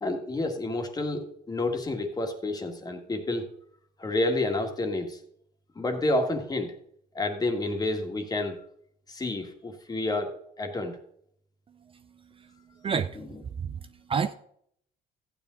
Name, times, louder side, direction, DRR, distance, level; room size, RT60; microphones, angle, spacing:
voice 1, 0.0-3.4 4.0-5.2 5.8-6.7 7.1-8.6 9.1-10.3 10.6-11.0, left 2 dB, 20° left, 2.0 m, -29 dB
voice 2, 12.8-13.2 13.6-14.3, right 6 dB, 30° right, 0.5 m, -30 dB
14.0 x 9.4 x 4.0 m
cardioid pair, 110°, 17 cm